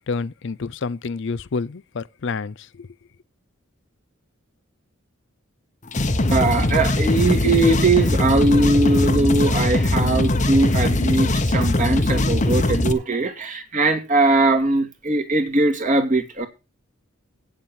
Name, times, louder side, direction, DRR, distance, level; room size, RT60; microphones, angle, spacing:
voice 1, 0.1-2.9, left 4 dB, 60° left, 0.5 m, -29 dB
sound 1, 5.9-12.9, left 1 dB, 35° left, 1.1 m, -20 dB
voice 2, 6.3-16.5, right 2 dB, 40° right, 2.3 m, -20 dB
8.8 x 7.5 x 7.3 m
head